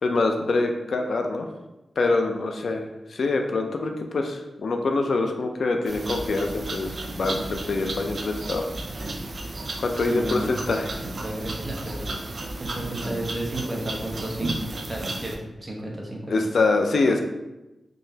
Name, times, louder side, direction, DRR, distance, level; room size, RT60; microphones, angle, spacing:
voice 1, 0.0-1.5 2.0-8.6 9.8-10.9 16.3-17.2, left 3 dB, 65° left, 4 dB, 0.4 m, -25 dB
sound 1, 5.9-15.4, right 2 dB, 50° right, 0.4 m, -33 dB
voice 2, 9.9-10.7 11.0-12.1 12.6-15.3 15.6-16.4, right 1 dB, 20° right, -2 dB, 0.8 m, -33 dB
3.8 x 3.0 x 2.7 m, 0.99 s
wide cardioid pair, 125°, 0 cm